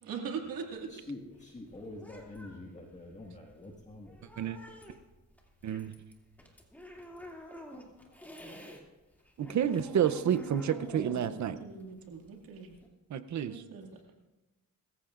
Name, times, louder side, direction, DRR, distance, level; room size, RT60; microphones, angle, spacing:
voice 1, 0.0-0.9 11.2-12.8 13.4-13.9, right 6 dB, 90° right, 2 dB, 2.3 m, -41 dB
sound 1, 0.7-8.8 9.1-12.9, equal, 5° left, 2.5 m, -49 dB
voice 2, 0.9-4.3 8.0-8.5 13.9-14.0, left 2 dB, 20° left, -1 dB, 1.8 m, -46 dB
voice 3, 5.6-5.9 9.4-11.6 13.1-13.6, right 9 dB, 55° right, 13 dB, 0.7 m, -30 dB
22.5 x 14.5 x 2.5 m, 1.1 s
cardioid pair, 105°, 34 cm